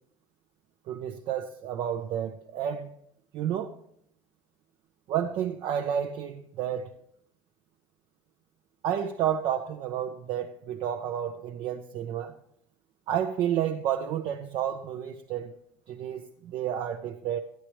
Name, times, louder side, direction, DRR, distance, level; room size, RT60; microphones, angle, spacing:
voice 1, 0.9-2.9 3.3-3.7 5.1-6.9 8.8-12.3 13.1-15.5 15.9-17.4, right 9 dB, 65° right, 0.6 m, -30 dB
13.5 x 10.0 x 3.1 m
supercardioid pair, 100°, 9 cm